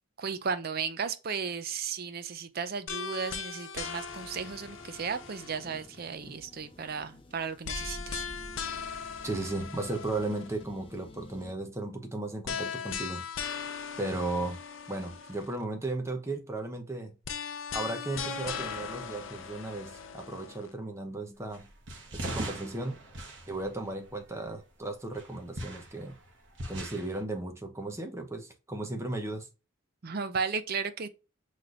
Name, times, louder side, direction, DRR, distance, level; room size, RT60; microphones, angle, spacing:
voice 1, 0.2-8.2 30.0-31.1, right 5 dB, 50° right, 0.5 m, -35 dB
sound 1, 2.9-6.0 7.6-10.6 12.4-15.6 17.2-20.7, left 6 dB, 75° left, 0.6 m, -39 dB
sound 2, 4.1-11.5, left 1 dB, 25° left, 0.7 m, -49 dB
voice 2, 9.2-13.2 14.0-14.6 14.9-17.1 17.7-21.7 22.1-23.0 23.5-26.1 26.7-29.5, right 2 dB, 15° right, 0.8 m, -35 dB
sound 3, 21.5-24.6 25.1-27.2, right 1 dB, 65° right, 1.1 m, -41 dB
5.9 x 3.2 x 2.5 m
head